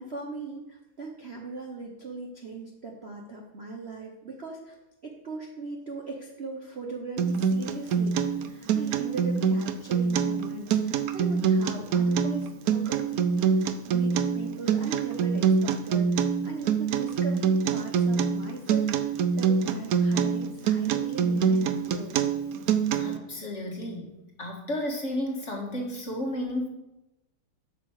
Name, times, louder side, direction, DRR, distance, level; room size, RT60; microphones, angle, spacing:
voice 1, 0.0-4.7 5.0-22.2, right 3 dB, 40° right, 0 dB, 1.0 m, -39 dB
Acoustic guitar, 7.2-23.2, right 6 dB, 75° right, 0.8 m, -25 dB
voice 2, 22.9-24.1 24.4-26.7, left 1 dB, 35° left, 0 dB, 1.8 m, -32 dB
8.2 x 6.8 x 6.5 m, 0.96 s
omnidirectional pair, 2.3 m